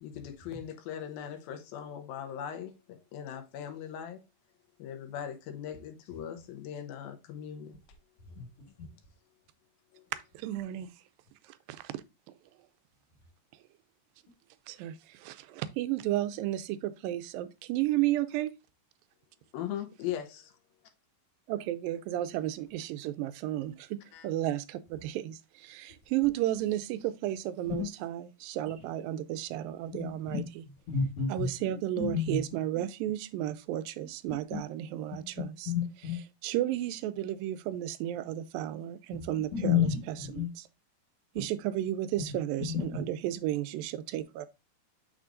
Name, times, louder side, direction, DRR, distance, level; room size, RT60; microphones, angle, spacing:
voice 1, 0.0-4.2 4.8-7.8 9.9-10.1 19.5-20.5 24.1-24.3, left 9 dB, 90° left, 2.7 m, -39 dB
voice 2, 10.3-10.9 11.4-11.9 14.7-18.5 21.5-30.6 31.3-35.7 36.4-40.7 41.4-44.5, right 13 dB, 85° right, 2.2 m, -33 dB
voice 3, 29.9-30.5 30.9-32.4 34.5-34.6 35.1-36.2 39.5-40.5 42.6-43.0, left 7 dB, 55° left, 1.8 m, -31 dB
6.2 x 6.0 x 2.6 m
omnidirectional pair, 4.0 m